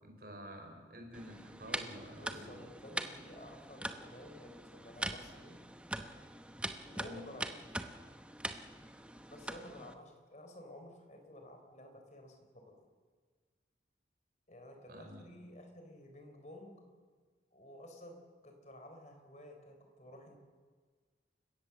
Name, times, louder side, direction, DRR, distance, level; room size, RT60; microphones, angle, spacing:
voice 1, 0.0-2.5 7.0-7.2 14.9-15.2, equal, 55° right, 3 dB, 5.0 m, -49 dB
sound 1, 1.1-9.9, right 1 dB, 5° right, 0.9 m, -43 dB
voice 2, 2.1-5.7 6.8-7.5 9.3-12.9 14.5-16.8 17.5-20.4, left 1 dB, 40° left, 4 dB, 4.1 m, -53 dB
29.0 x 16.5 x 7.2 m, 1.6 s
head